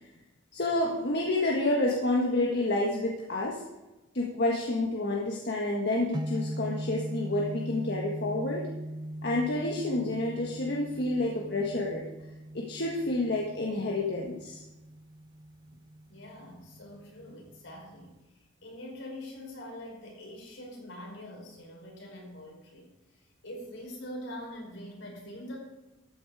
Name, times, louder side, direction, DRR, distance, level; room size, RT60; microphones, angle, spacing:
voice 1, 0.5-3.6 4.1-8.7 9.2-12.0 12.5-14.6, left 2 dB, 55° left, -2 dB, 1.6 m, -29 dB
sound 1, 6.1-18.2, right 1 dB, 20° right, 0.5 m, -40 dB
voice 2, 16.1-25.6, left 1 dB, 80° left, -1 dB, 5.0 m, -44 dB
13.5 x 9.5 x 4.9 m, 1.0 s
head